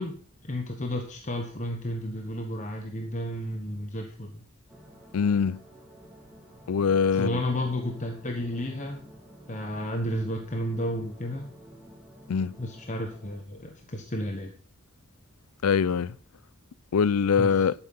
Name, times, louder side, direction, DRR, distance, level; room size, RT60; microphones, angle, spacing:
voice 1, 0.0-4.4 7.1-9.0 9.5-11.5 12.6-14.5 17.4-17.7, left 1 dB, 35° left, 1.3 m, -32 dB
sound 1, 4.7-13.4, equal, 5° right, 3.3 m, -51 dB
voice 2, 5.1-5.6 6.7-7.3 12.3-12.5 15.6-16.1 16.9-17.7, left 6 dB, 85° left, 0.5 m, -23 dB
11.5 x 8.9 x 5.6 m
head